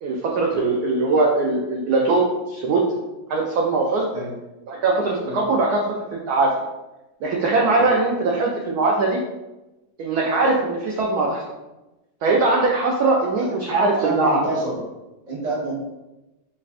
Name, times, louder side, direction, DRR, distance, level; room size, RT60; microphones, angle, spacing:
voice 1, 0.0-2.8 3.3-4.1 4.7-5.9 6.3-6.5 7.2-9.2 10.0-11.4 12.2-14.4, right 3 dB, 75° right, -1 dB, 0.9 m, -21 dB
voice 2, 13.2-13.5 13.9-14.8 15.3-15.7, right 2 dB, 25° right, -6 dB, 0.9 m, -28 dB
5.8 x 2.2 x 2.4 m, 1.0 s
omnidirectional pair, 2.0 m